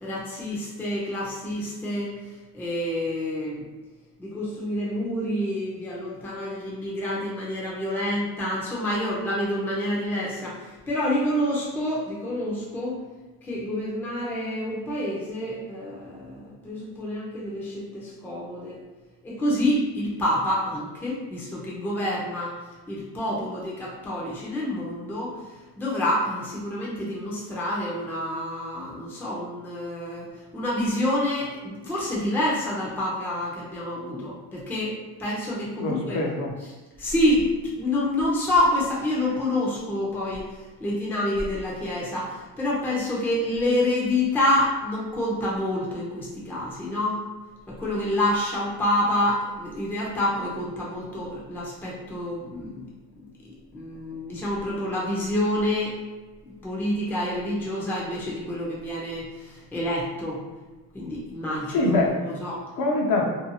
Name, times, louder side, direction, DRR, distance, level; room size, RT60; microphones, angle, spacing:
voice 1, 0.0-2.1 2.5-3.7 4.2-13.0 13.4-18.8 19.2-22.5 22.9-25.4 25.8-30.3 30.5-36.2 37.0-37.5 37.7-47.2 47.7-52.9 53.7-56.0 56.6-60.4 60.9-62.0 62.2-62.6, left 1 dB, 5° left, -5 dB, 0.5 m, -27 dB
voice 2, 35.8-36.5 61.7-62.1 62.8-63.3, left 2 dB, 55° left, 0 dB, 0.6 m, -24 dB
2.6 x 2.3 x 2.7 m, 1.2 s
cardioid pair, 130°, 44 cm